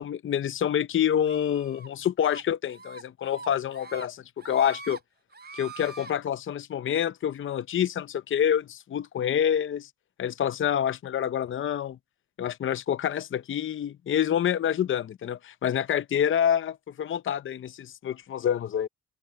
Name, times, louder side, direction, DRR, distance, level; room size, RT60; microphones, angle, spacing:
voice 1, 0.0-5.0 5.5-9.9 10.2-12.0 12.4-18.9, left 9 dB, 45° left, 0.7 m, -27 dB
sound 1, 1.3-1.9 2.2-2.4 2.8-3.0 3.3-4.1 4.4-5.0 5.3-6.1, right 3 dB, 35° right, 3.2 m, -43 dB
open air
cardioid pair, 90°, 30 cm